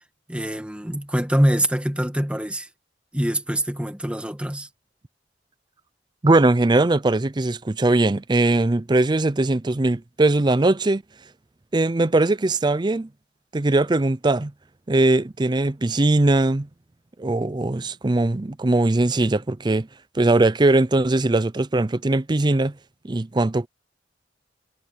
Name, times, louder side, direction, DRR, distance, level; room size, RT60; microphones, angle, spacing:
voice 1, 0.3-2.7 3.1-4.7, equal, 5° right, 2.1 m, -24 dB
voice 2, 6.2-11.0 11.7-13.1 13.5-14.5 14.9-16.7 17.2-19.9 20.1-22.7 23.0-23.7, right 2 dB, 25° right, 0.5 m, -20 dB
head